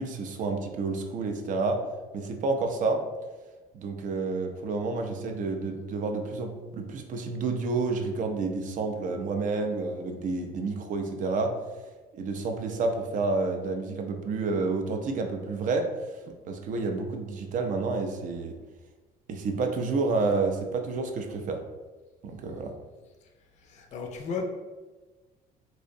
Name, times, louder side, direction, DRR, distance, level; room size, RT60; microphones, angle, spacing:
voice 1, 0.0-1.8 2.1-3.0 3.7-11.6 12.1-15.9 16.5-18.6 19.3-21.6 22.2-22.7, right 3 dB, 50° right, 4 dB, 0.4 m, -29 dB
voice 2, 23.6-24.5, left 4 dB, 45° left, 3 dB, 0.4 m, -34 dB
2.6 x 2.0 x 2.6 m, 1.2 s
cardioid pair, 110°, 17 cm